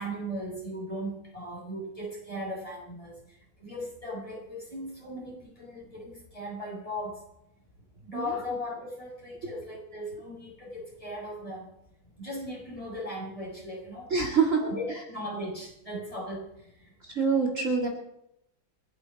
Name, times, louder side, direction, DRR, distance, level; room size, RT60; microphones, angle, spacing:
voice 1, 0.0-3.2 3.6-7.2 8.0-11.7 12.2-14.1 14.6-16.7, equal, 15° left, -3 dB, 6.6 m, -37 dB
voice 2, 14.1-14.6 14.9-15.0 17.0-17.9, right 5 dB, 40° right, 1 dB, 2.6 m, -26 dB
29.5 x 11.0 x 4.2 m, 0.81 s
omnidirectional pair, 2.1 m